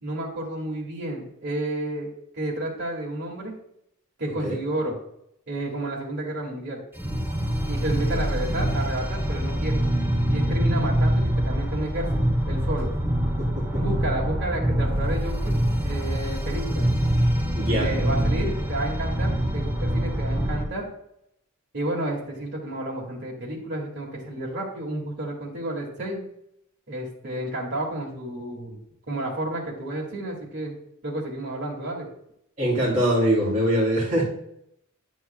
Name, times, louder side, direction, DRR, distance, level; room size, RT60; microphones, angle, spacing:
voice 1, 0.0-3.5 4.2-5.0 5.5-6.8 7.6-9.8 10.3-12.9 13.8-15.5 15.8-16.8 17.6-20.9 21.7-26.2 26.9-28.8 29.1-30.8 31.0-32.1, right 1 dB, 55° right, -2 dB, 2.0 m, -31 dB
sound 1, 7.0-20.6, equal, 10° right, 1.0 m, -25 dB
voice 2, 13.4-13.8 17.6-17.9 32.6-34.2, equal, 40° right, -7 dB, 3.0 m, -23 dB
10.5 x 7.8 x 2.2 m, 0.75 s
head